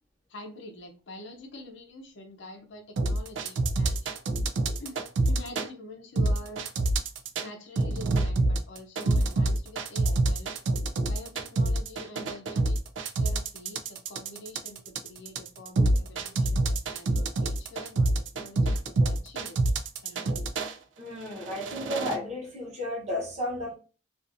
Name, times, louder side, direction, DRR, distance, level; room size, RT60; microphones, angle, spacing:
voice 1, 0.3-4.2 4.8-6.6 7.4-10.5 11.0-12.8 13.2-19.6 20.0-20.4, left 1 dB, 70° left, 4 dB, 0.6 m, -46 dB
sound 1, 3.0-5.7 6.2-7.5 7.8-20.7 21.3-22.2, right 2 dB, 75° right, 0.3 m, -26 dB
voice 2, 21.0-23.8, left 1 dB, 35° right, -4 dB, 1.0 m, -33 dB
2.5 x 2.4 x 2.5 m, 0.36 s
head